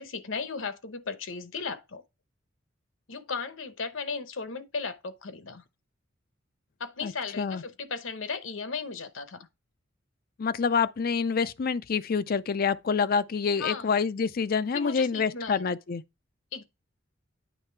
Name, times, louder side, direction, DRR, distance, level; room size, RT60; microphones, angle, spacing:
voice 1, 0.0-2.0 3.1-5.6 6.8-9.5 13.6-13.9 14.7-15.8 16.5-16.6, left 5 dB, 85° left, 0.9 m, -36 dB
voice 2, 10.4-16.0, left 5 dB, 50° left, 0.4 m, -27 dB
9.1 x 3.3 x 4.5 m
head